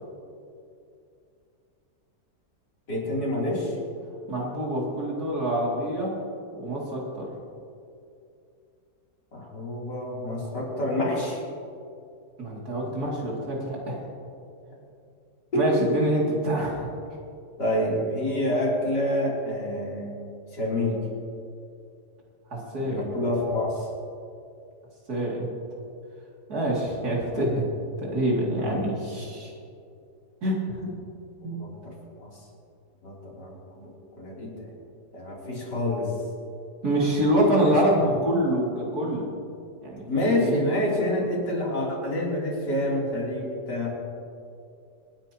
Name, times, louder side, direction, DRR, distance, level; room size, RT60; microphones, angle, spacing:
voice 1, 2.9-3.8 9.3-11.4 15.5-15.8 17.6-20.2 20.6-21.0 22.8-23.9 28.6-28.9 31.4-32.3 33.0-33.9 34.2-34.7 35.1-36.1 37.6-37.7 40.1-44.0, left 1 dB, 90° left, -5 dB, 3.9 m, -27 dB
voice 2, 4.3-6.2 6.5-7.3 12.4-14.0 15.5-16.9 22.5-23.1 25.1-25.5 26.5-27.6 28.0-29.5 30.4-30.8 31.4-31.6 36.8-39.3 39.8-40.6, right 1 dB, 65° right, -4 dB, 3.2 m, -26 dB
26.5 x 10.0 x 3.0 m, 2.5 s
omnidirectional pair, 1.8 m